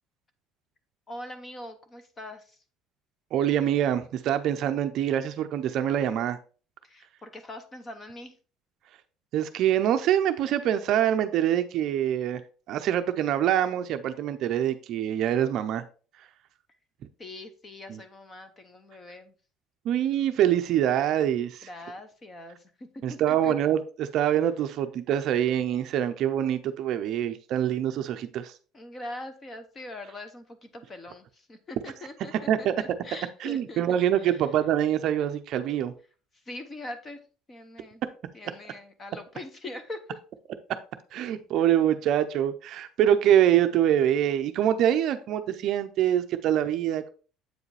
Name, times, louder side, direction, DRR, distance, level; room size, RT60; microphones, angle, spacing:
voice 1, 1.1-2.6 6.8-8.4 17.2-19.3 21.6-23.5 28.7-34.4 36.3-37.2 37.5-38.0 38.3-40.2, left 1 dB, 20° left, 9 dB, 0.7 m, -42 dB
voice 2, 3.3-6.4 9.3-12.4 12.7-15.8 17.9-18.0 19.8-21.7 23.0-28.5 32.5-32.7 33.4-35.9 41.1-47.1, right 10 dB, 45° right, 9 dB, 0.5 m, -25 dB
7.9 x 4.9 x 3.2 m, 0.37 s
cardioid pair, 180°, 0 cm